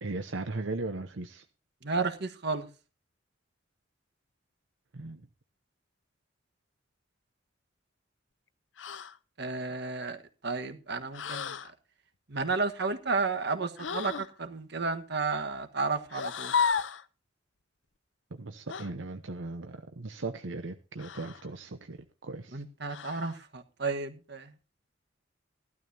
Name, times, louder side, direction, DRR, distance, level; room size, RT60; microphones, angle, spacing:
voice 1, 0.0-1.4 4.9-5.3 18.3-22.6, right 3 dB, 80° right, 0.9 m, -38 dB
voice 2, 1.8-2.7 9.4-11.7 12.3-16.5 22.5-24.5, right 4 dB, 60° right, 1.4 m, -32 dB
sound 1, 8.8-9.2 11.1-11.7 13.8-14.3 16.1-17.1 18.7-18.9 21.0-21.5 22.9-23.4, left 6 dB, 75° left, 0.7 m, -33 dB
16.0 x 12.5 x 2.8 m
head